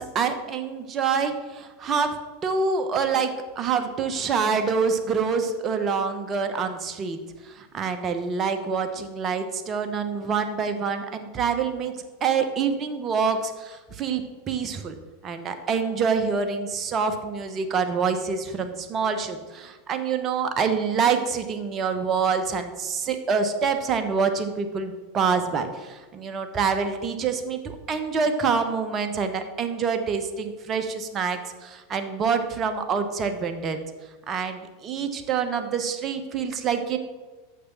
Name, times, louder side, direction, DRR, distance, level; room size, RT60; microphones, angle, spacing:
voice 1, 0.0-2.2 2.4-11.9 12.2-15.0 15.2-33.8 34.3-37.0, right 5 dB, 30° right, 7 dB, 1.1 m, -26 dB
6.6 x 6.6 x 6.1 m, 1.2 s
figure-of-eight pair, 85°, 0 cm